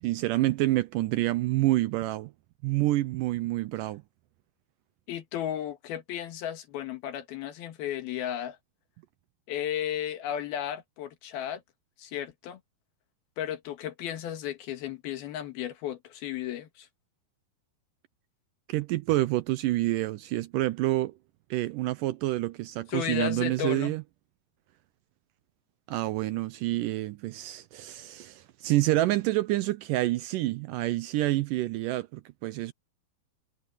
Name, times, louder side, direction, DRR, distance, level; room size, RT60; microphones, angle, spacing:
voice 1, 0.0-2.3 2.6-4.0 18.7-21.1 21.5-24.0 25.9-32.7, right 17 dB, 80° right, 2.0 m, -28 dB
voice 2, 5.1-8.6 9.5-11.6 12.0-12.6 13.4-16.9 22.9-24.0, left 10 dB, 90° left, 3.5 m, -34 dB
omnidirectional pair, 4.3 m